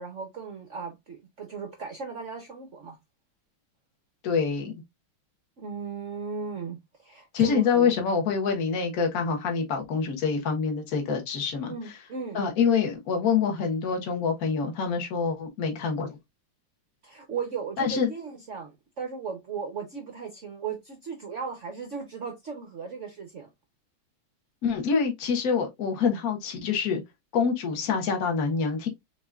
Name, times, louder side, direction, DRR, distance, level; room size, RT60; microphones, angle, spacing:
voice 1, 0.0-3.0 5.6-7.9 11.7-12.4 17.0-23.5, right 5 dB, 70° right, 0.7 m, -36 dB
voice 2, 4.2-4.7 7.3-11.7 12.3-16.1 17.8-18.1 24.6-27.0 27.3-28.9, left 6 dB, 50° left, 1.5 m, -26 dB
6.0 x 3.0 x 2.4 m
omnidirectional pair, 2.4 m